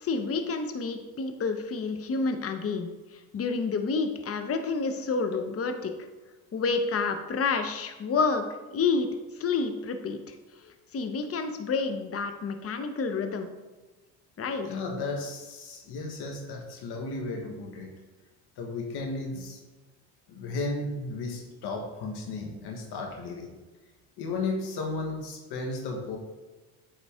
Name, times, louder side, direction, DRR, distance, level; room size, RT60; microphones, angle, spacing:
voice 1, 0.0-2.9 3.3-5.9 6.5-9.1 9.4-10.3 10.9-13.5 14.4-14.7, left 4 dB, 35° left, 7 dB, 0.9 m, -29 dB
voice 2, 14.6-17.9 18.6-19.6 20.3-23.6 24.2-26.2, left 3 dB, 70° left, 2 dB, 1.7 m, -34 dB
8.9 x 4.0 x 3.6 m, 1.2 s
supercardioid pair, 75°, 41 cm